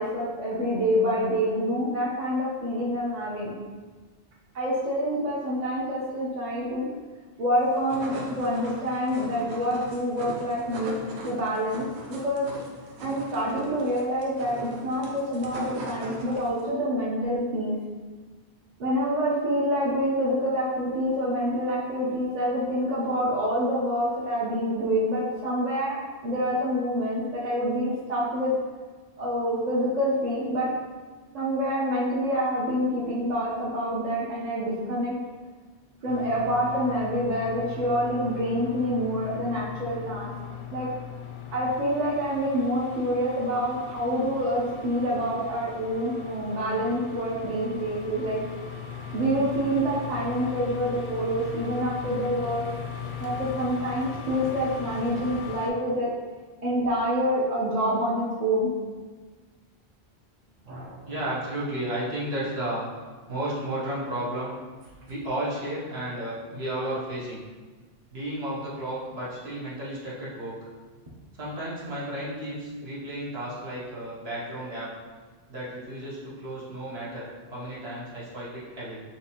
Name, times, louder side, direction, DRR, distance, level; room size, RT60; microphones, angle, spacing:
voice 1, 0.0-3.5 4.5-6.9 7.4-10.9 11.2-12.5 13.0-17.8 18.8-28.5 29.2-30.7 31.3-35.1 36.0-40.3 40.7-40.9 41.5-48.4 49.1-52.6 53.2-56.1 56.6-58.7 60.7-61.2, equal, 45° right, -5 dB, 0.8 m, -27 dB
sound 1, 7.6-16.7, right 1 dB, 90° right, 1.0 m, -40 dB
sound 2, 36.1-55.7, left 7 dB, 60° left, 0.6 m, -39 dB
voice 2, 61.1-62.9 63.3-64.6 65.1-67.4 68.1-70.7 71.4-74.9 75.5-79.0, right 1 dB, 70° right, -8 dB, 1.4 m, -33 dB
5.7 x 2.7 x 2.9 m, 1.4 s
omnidirectional pair, 1.1 m